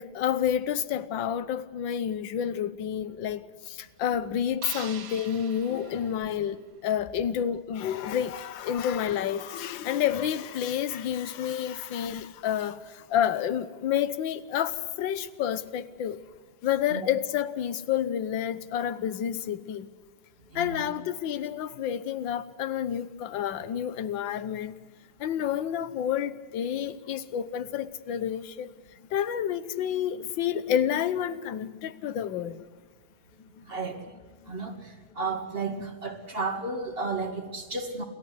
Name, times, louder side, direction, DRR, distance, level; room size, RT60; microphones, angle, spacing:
voice 1, 0.0-16.2 16.6-19.9 20.5-24.7 25.2-28.7 29.1-32.6 33.6-33.7, left 9 dB, 65° left, 1.7 m, -29 dB
sound 1, 4.6-6.9, right 7 dB, 55° right, 1.7 m, -44 dB
voice 2, 20.5-20.9 33.7-34.0 34.5-38.0, right 3 dB, 25° right, 2.5 m, -33 dB
29.5 x 13.5 x 9.7 m
omnidirectional pair, 2.3 m